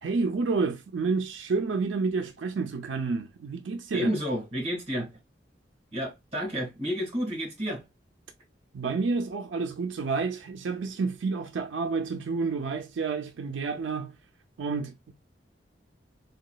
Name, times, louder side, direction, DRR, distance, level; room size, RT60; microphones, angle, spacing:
voice 1, 0.0-4.1 8.7-14.1 14.6-15.1, right 4 dB, 85° right, 0.5 m, -29 dB
voice 2, 3.9-5.2 5.9-7.8, equal, 30° right, 1.5 m, -31 dB
3.8 x 2.3 x 2.2 m
head